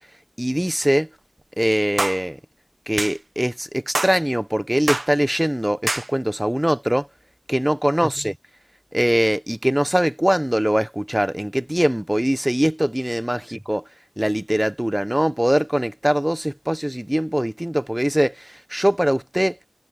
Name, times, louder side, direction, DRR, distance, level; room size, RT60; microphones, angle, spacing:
voice 1, 0.4-1.1 1.6-2.4 2.9-7.1 7.5-8.3 8.9-13.8 14.2-19.6, equal, 10° right, 1.1 m, -22 dB
sound 1, 2.0-2.2 3.0-3.2 3.9-4.2 4.9-5.1 5.9-6.1, right 2 dB, 50° right, 1.1 m, -24 dB
wide cardioid pair, 50°, 0 cm